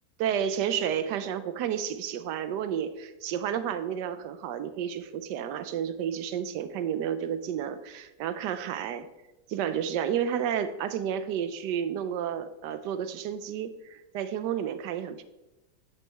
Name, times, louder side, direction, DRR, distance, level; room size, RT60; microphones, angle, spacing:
voice 1, 0.2-9.1 9.5-15.2, right 9 dB, 85° right, 11 dB, 1.2 m, -31 dB
9.1 x 7.4 x 3.4 m, 1.0 s
omnidirectional pair, 1.8 m